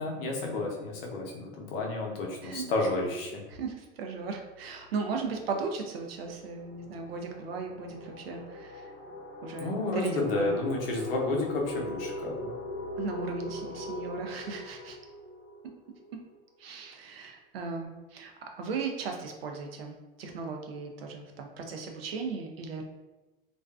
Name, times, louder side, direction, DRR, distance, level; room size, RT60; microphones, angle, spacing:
voice 1, 0.0-3.4 9.6-12.5, left 2 dB, 80° left, 0 dB, 0.7 m, -31 dB
voice 2, 3.5-8.9 9.4-10.6 13.0-15.0 16.6-22.8, right 4 dB, 90° right, 3 dB, 0.5 m, -37 dB
sound 1, 4.2-4.4 4.7-16.3, left 1 dB, 35° left, 0.7 m, -41 dB
2.4 x 2.2 x 2.3 m, 1.1 s
hypercardioid pair, 95°, 29 cm